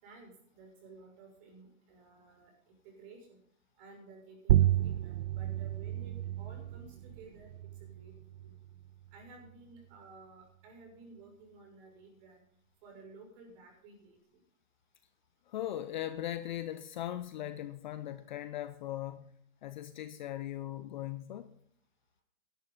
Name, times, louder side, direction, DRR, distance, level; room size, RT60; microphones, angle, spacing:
voice 1, 0.0-3.4 3.8-7.5 7.8-8.6 9.1-12.4 12.8-14.4, right 3 dB, 35° right, 6.3 m, -54 dB
sound 1, 4.5-9.6, right 13 dB, 80° right, 0.6 m, -32 dB
voice 2, 15.5-19.3 19.6-21.5, left 12 dB, 35° left, 0.6 m, -39 dB
15.5 x 11.5 x 3.9 m
hypercardioid pair, 145°, 42 cm